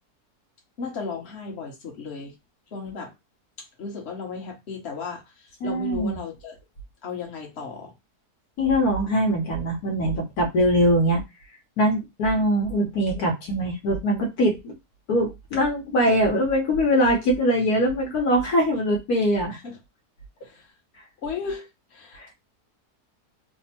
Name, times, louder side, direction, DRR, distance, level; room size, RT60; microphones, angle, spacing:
voice 1, 0.8-2.3 2.7-3.1 3.8-6.5 7.0-7.9 16.0-16.1 19.5-19.8 20.4-20.7 21.2-22.3, left 5 dB, 45° left, 1.4 m, -35 dB
voice 2, 5.6-6.2 8.6-11.2 11.8-14.7 15.1-19.6 22.2-22.3, equal, 70° left, 1.4 m, -22 dB
3.4 x 2.0 x 4.1 m
omnidirectional pair, 1.7 m